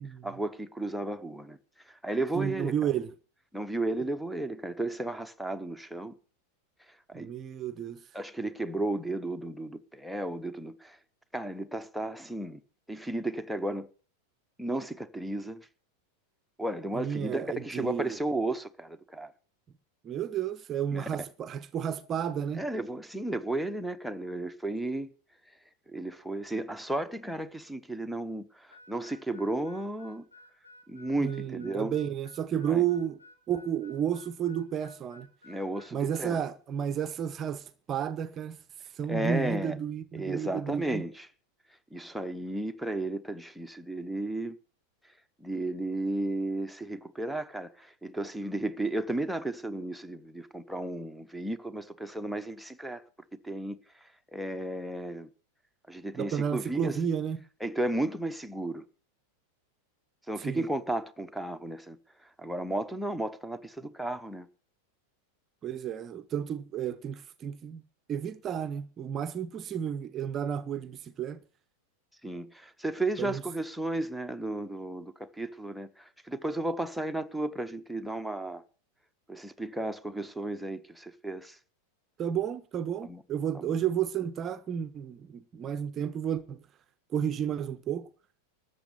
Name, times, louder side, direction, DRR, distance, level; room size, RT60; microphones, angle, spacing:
voice 1, 0.2-1.6 1.9-2.7 3.5-6.1 7.1-7.3 8.1-11.0 11.3-12.6 12.9-13.9 14.6-15.7 16.6-19.3 20.9-21.0 22.6-25.1 25.9-30.3 30.9-32.0 32.7-32.8 35.4-36.4 39.1-39.8 40.1-41.3 41.9-44.6 45.4-53.0 53.4-55.3 55.9-57.0 57.6-58.8 60.3-62.0 62.4-64.5 72.2-78.6 79.3-81.6 83.0-83.2 83.5-83.8, right 1 dB, ahead, 0.9 m, -34 dB
voice 2, 2.3-3.1 7.1-8.0 16.9-18.2 20.0-22.6 31.2-33.2 33.5-35.3 35.9-38.6 38.9-41.0 56.1-57.4 60.4-60.7 65.6-67.8 68.1-71.4 73.2-73.4 82.2-86.6 87.1-88.1, right 8 dB, 25° right, 0.7 m, -32 dB
Harmonica, 28.7-36.3, left 2 dB, 85° left, 2.0 m, -55 dB
13.0 x 7.6 x 7.9 m
figure-of-eight pair, 90°, 0 cm